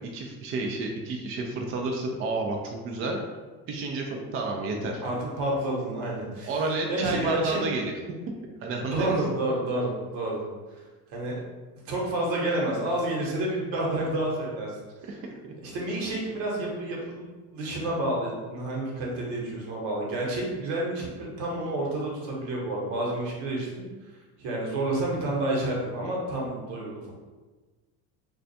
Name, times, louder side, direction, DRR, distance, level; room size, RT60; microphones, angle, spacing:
voice 1, 0.1-3.2 3.7-5.0 6.5-7.9 8.6-9.2 15.1-15.2 15.4-15.5, right 3 dB, 30° right, 1 dB, 0.4 m, -30 dB
voice 2, 5.0-6.5 6.9-7.6 8.7-10.4 11.1-11.4 11.9-15.1 15.6-23.9 24.4-27.1, right 1 dB, 65° right, -3 dB, 1.0 m, -29 dB
2.4 x 2.2 x 2.6 m, 1.3 s
hypercardioid pair, 75°, 43 cm